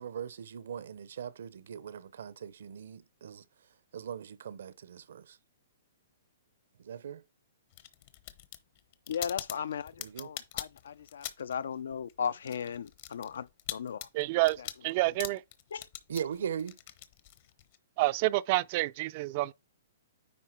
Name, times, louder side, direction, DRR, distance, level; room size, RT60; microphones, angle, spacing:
voice 1, 0.0-3.4 3.9-5.4 6.8-7.2 10.0-10.3 16.1-16.8, right 8 dB, 70° right, 0.6 m, -40 dB
sound 1, 7.7-11.6 11.9-17.8, left 13 dB, 40° left, 0.8 m, -43 dB
voice 2, 9.1-14.1 15.7-15.9, left 7 dB, 75° left, 0.5 m, -36 dB
voice 3, 14.1-15.4 18.0-19.5, right 19 dB, 35° right, 0.3 m, -28 dB
9.7 x 3.7 x 4.4 m
hypercardioid pair, 160°, 0 cm